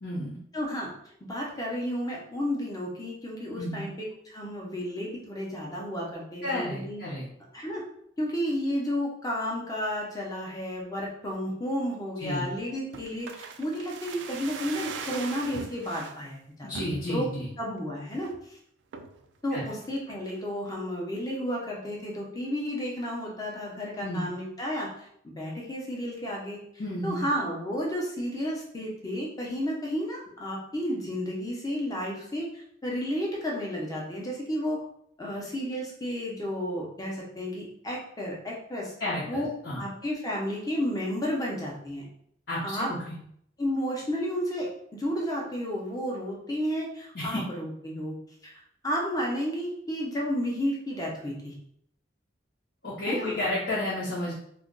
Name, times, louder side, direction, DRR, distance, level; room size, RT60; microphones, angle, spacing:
voice 1, 0.0-0.4 3.6-3.9 6.4-7.2 12.2-12.5 16.6-17.5 19.5-19.6 24.0-24.3 26.8-27.3 39.0-39.8 42.5-43.2 47.1-47.4 52.8-54.3, left 1 dB, 65° left, -8 dB, 0.8 m, -31 dB
voice 2, 0.5-0.9 1.2-7.0 7.5-7.8 8.2-16.7 17.1-17.3 17.6-18.3 19.4-24.9 25.2-26.6 27.0-34.8 35.2-38.9 39.3-39.5 39.8-42.0 42.6-42.9 43.6-48.1 48.4-51.5 53.1-53.3, equal, 20° left, -3 dB, 0.7 m, -32 dB
sound 1, 12.9-16.2 16.7-17.4 17.8-17.9 18.1-18.4 18.9-19.2 19.7-20.4 20.7-20.8, right 5 dB, 75° right, 0.3 m, -40 dB
2.4 x 2.2 x 3.7 m, 0.69 s
head